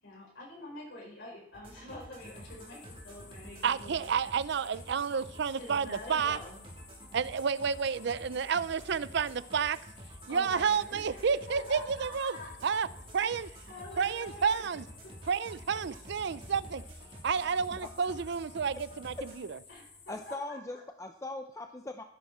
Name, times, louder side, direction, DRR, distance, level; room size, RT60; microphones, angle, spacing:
voice 1, 0.0-4.1 5.5-6.6 10.3-12.8 13.3-14.6 15.2-15.3 15.7-15.8 19.7-20.8, left 2 dB, 70° left, 5.3 m, -46 dB
sound 1, 1.5-19.4, right 1 dB, 30° right, 3.4 m, -50 dB
sound 2, 2.2-20.4, left 5 dB, 45° left, 2.6 m, -56 dB
voice 2, 3.6-6.4 7.1-9.8 10.3-12.4 12.6-12.9 13.1-13.5 14.0-14.9 15.3-16.8 17.2-19.6, right 6 dB, 65° right, 0.5 m, -30 dB
voice 3, 20.1-22.0, left 2 dB, 15° left, 0.6 m, -40 dB
15.0 x 9.7 x 4.3 m
head